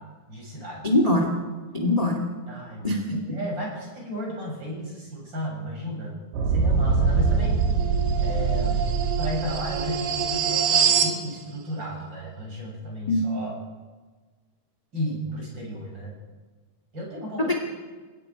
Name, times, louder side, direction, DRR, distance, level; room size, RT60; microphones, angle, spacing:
voice 1, 0.3-0.9 2.5-6.2 6.5-7.7 8.2-8.9 9.2-13.6 14.9-16.1 16.9-17.5, equal, 25° right, -2 dB, 7.4 m, -34 dB
voice 2, 0.8-1.3 1.7-2.2 2.8-3.4 13.1-13.2 17.5-17.6, left 1 dB, 15° left, 2 dB, 1.5 m, -23 dB
sound 1, 6.3-11.2, right 5 dB, 80° right, 3.7 m, -23 dB
30.0 x 18.0 x 5.0 m, 1.4 s
omnidirectional pair, 4.5 m